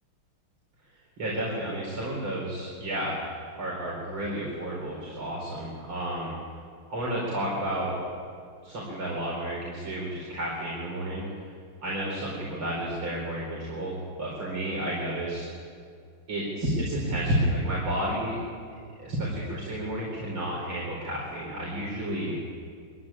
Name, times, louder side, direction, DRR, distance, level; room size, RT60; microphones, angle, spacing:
voice 1, 1.2-3.1 3.5-6.3 6.9-8.0 8.6-11.2 11.8-15.4 16.3-18.4 19.0-22.4, right 1 dB, 70° right, -5 dB, 5.2 m, -31 dB
23.5 x 15.5 x 9.8 m, 2.3 s
omnidirectional pair, 2.3 m